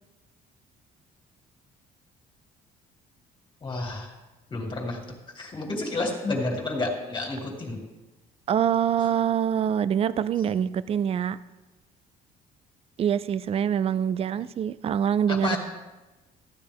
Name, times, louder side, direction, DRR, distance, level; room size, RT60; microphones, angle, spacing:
voice 1, 3.6-4.1 4.5-5.0 5.3-7.8 15.3-15.6, left 2 dB, 25° left, 1 dB, 2.4 m, -30 dB
voice 2, 8.5-11.4 13.0-15.6, right 8 dB, 35° right, 17 dB, 0.4 m, -25 dB
14.5 x 9.8 x 3.5 m, 1.1 s
cardioid pair, 110°, 17 cm